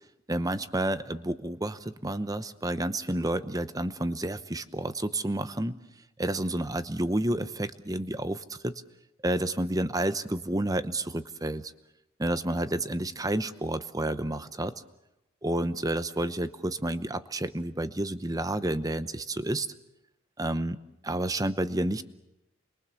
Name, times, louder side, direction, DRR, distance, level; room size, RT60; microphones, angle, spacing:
voice 1, 0.3-5.7 6.2-8.8 9.2-11.7 12.2-14.7 15.4-19.7 20.4-20.8 21.0-22.0, right 1 dB, 15° right, 12 dB, 0.8 m, -30 dB
29.5 x 22.5 x 7.0 m, 0.90 s
head